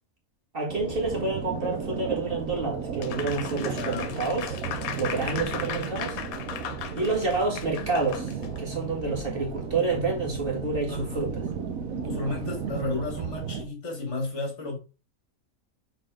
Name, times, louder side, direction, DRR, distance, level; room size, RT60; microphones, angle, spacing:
voice 1, 0.5-4.6 5.0-6.2 7.0-8.3 8.6-11.4, right 3 dB, 40° right, 2.1 m, -28 dB
sound 1, 0.7-13.7, right 6 dB, 80° right, 1.4 m, -34 dB
Applause, 3.0-8.6, left 8 dB, 85° left, 1.2 m, -37 dB
voice 2, 3.7-4.2 8.8-9.0 10.9-11.3 12.0-14.8, left 3 dB, 55° left, 1.9 m, -33 dB
6.7 x 4.1 x 3.7 m
omnidirectional pair, 1.5 m